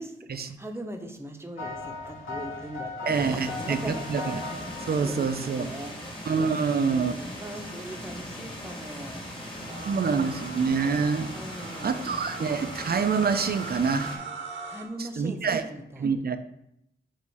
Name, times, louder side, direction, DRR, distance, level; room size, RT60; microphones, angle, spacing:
voice 1, 0.0-4.0 5.0-6.3 6.8-9.2 9.6-10.4 11.3-12.0 14.7-16.1, right 1 dB, 10° right, 4 dB, 0.9 m, -40 dB
sound 1, 1.6-5.8, left 3 dB, 80° left, 1.8 m, -38 dB
sound 2, 3.1-14.2, equal, 25° left, 1.8 m, -39 dB
voice 2, 3.1-4.4 4.8-5.7 6.3-7.1 9.9-11.4 11.8-14.2 15.0-15.6 16.0-16.4, right 5 dB, 50° right, 9 dB, 0.6 m, -26 dB
sound 3, 9.7-14.8, right 4 dB, 70° right, 1.1 m, -41 dB
6.3 x 3.7 x 5.5 m, 0.78 s
wide cardioid pair, 105°, 21 cm